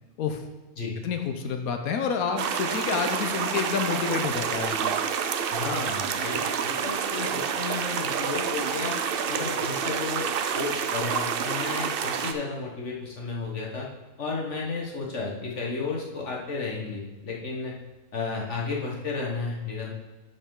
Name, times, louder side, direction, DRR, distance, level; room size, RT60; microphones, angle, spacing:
voice 1, 1.0-4.9, left 6 dB, 85° left, 6 dB, 1.2 m, -29 dB
sound 1, 2.4-12.3, right 7 dB, 60° right, 0.6 m, -28 dB
voice 2, 5.5-9.0 9.3-10.3 10.5-13.9 14.2-17.7 18.1-19.9, left 4 dB, 60° left, -2 dB, 1.4 m, -33 dB
11.0 x 5.4 x 3.7 m, 1.2 s
omnidirectional pair, 1.5 m